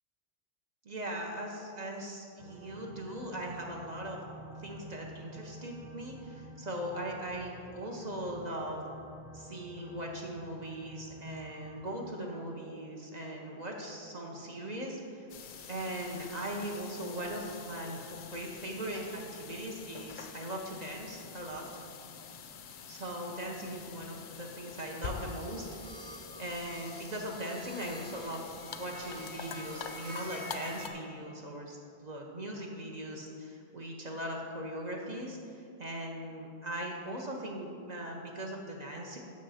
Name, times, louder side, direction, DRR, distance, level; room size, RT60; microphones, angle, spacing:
voice 1, 0.8-4.2 4.6-8.8 9.3-15.3 15.7-21.6 22.9-25.7 26.4-28.4 28.8-39.2, right 1 dB, 45° right, 0 dB, 0.8 m, -39 dB
sound 1, 2.4-11.9, right 1 dB, 5° right, 0.5 m, -49 dB
sound 2, 15.3-30.9, left 6 dB, 60° left, 0.6 m, -46 dB
sound 3, 24.4-30.9, equal, 75° right, 1.4 m, -49 dB
6.4 x 6.2 x 5.6 m, 2.4 s
omnidirectional pair, 1.1 m